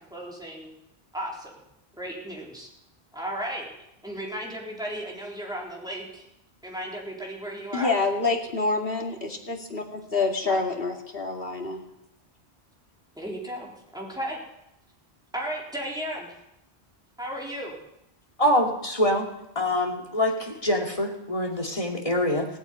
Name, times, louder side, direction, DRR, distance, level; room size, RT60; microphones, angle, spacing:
voice 1, 0.1-0.7 1.1-1.5 2.0-2.7 3.1-3.7 4.0-6.2 6.6-7.9 10.4-10.6 13.2-14.4 15.3-16.3 17.2-17.8, equal, 5° right, -3 dB, 3.9 m, -34 dB
voice 2, 7.7-11.8, left 3 dB, 60° left, 1 dB, 2.5 m, -27 dB
voice 3, 18.4-19.3 19.5-22.5, left 1 dB, 30° left, 0 dB, 2.5 m, -25 dB
17.5 x 8.7 x 9.2 m, 0.83 s
omnidirectional pair, 1.1 m